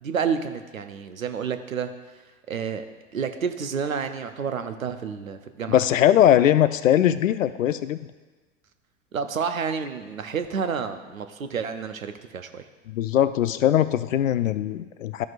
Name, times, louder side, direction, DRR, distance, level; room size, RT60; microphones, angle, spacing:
voice 1, 0.0-1.9 2.5-2.9 3.1-5.8 9.1-12.6, right 6 dB, 85° right, 8 dB, 0.7 m, -29 dB
voice 2, 5.7-8.0 12.9-15.3, left 11 dB, 75° left, 13 dB, 0.5 m, -20 dB
13.0 x 5.9 x 2.5 m, 1.3 s
figure-of-eight pair, 80°, 40 cm